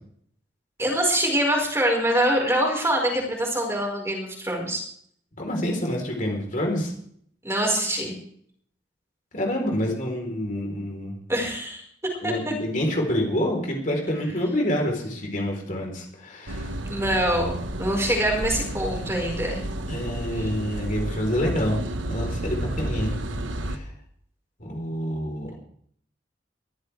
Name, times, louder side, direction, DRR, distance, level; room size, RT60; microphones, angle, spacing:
voice 1, 0.8-4.8 7.4-8.1 11.3-11.8 12.2-12.5 16.8-19.6 20.4-20.5, right 1 dB, 15° right, -1 dB, 5.0 m, -24 dB
voice 2, 5.4-6.9 9.3-11.1 12.2-16.7 19.9-23.1 23.6-23.9 24.6-25.6, equal, 45° left, 1 dB, 4.1 m, -27 dB
sound 1, 16.5-23.8, right 1 dB, 85° right, 1.4 m, -31 dB
22.0 x 14.0 x 3.5 m, 0.64 s
head